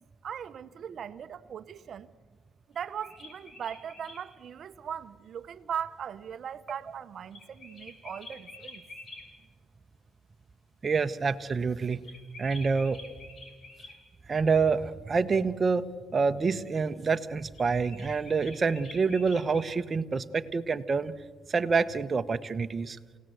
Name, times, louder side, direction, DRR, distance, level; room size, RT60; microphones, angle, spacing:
voice 1, 0.2-2.1 2.7-8.8, right 8 dB, 60° right, 0.8 m, -39 dB
sound 1, 2.7-4.2 7.3-9.3 12.0-14.0 17.5-19.7, left 2 dB, 55° left, 4.8 m, -48 dB
voice 2, 10.8-12.0 12.4-13.0 14.3-21.2 21.5-23.0, right 4 dB, 35° right, 1.0 m, -27 dB
29.0 x 17.0 x 7.9 m
cardioid pair, 90°, 0 cm